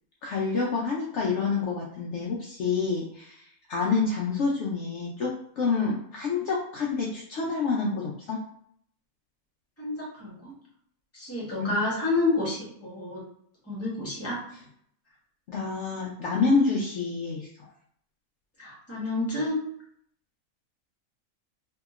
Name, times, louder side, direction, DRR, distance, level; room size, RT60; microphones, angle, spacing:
voice 1, 0.2-3.4 3.7-8.4 11.6-11.7 15.5-17.5, left 4 dB, 65° left, -3 dB, 0.8 m, -27 dB
voice 2, 9.8-10.5 11.1-13.3 13.7-14.4 18.6-19.6, left 2 dB, 10° left, -6 dB, 1.1 m, -29 dB
2.8 x 2.7 x 2.4 m, 0.66 s
omnidirectional pair, 1.5 m